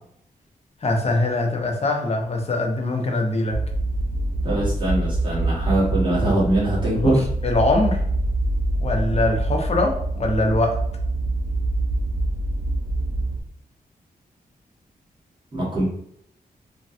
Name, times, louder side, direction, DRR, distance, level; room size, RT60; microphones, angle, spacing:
voice 1, 0.8-3.6 6.9-7.2 7.4-8.0 8.8-10.9, left 2 dB, 40° left, 2 dB, 0.6 m, -22 dB
sound 1, 3.5-13.4, right 2 dB, 85° right, 0.5 m, -25 dB
voice 2, 4.4-7.2 15.5-15.8, right 1 dB, 30° right, -7 dB, 1.3 m, -22 dB
3.1 x 2.2 x 2.6 m, 0.70 s
wide cardioid pair, 100°, 16 cm